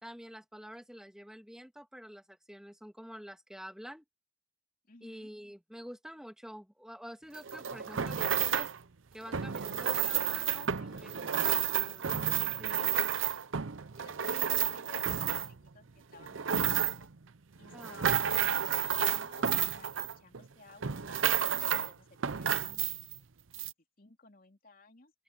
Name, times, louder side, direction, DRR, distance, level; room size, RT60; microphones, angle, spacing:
voice 1, 0.0-4.0 5.0-8.7 9.1-13.2 17.7-18.7, equal, 5° right, 2.6 m, -48 dB
voice 2, 4.8-5.3 9.7-12.7 13.9-17.1 17.5-22.9 23.6-23.7 24.0-25.1, left 3 dB, 45° left, 3.2 m, -57 dB
sound 1, 7.3-8.8 9.3-15.7 16.1-17.1 17.6-20.5 20.8-21.9 22.2-23.2 23.5-23.7, right 9 dB, 75° right, 0.7 m, -31 dB
open air
head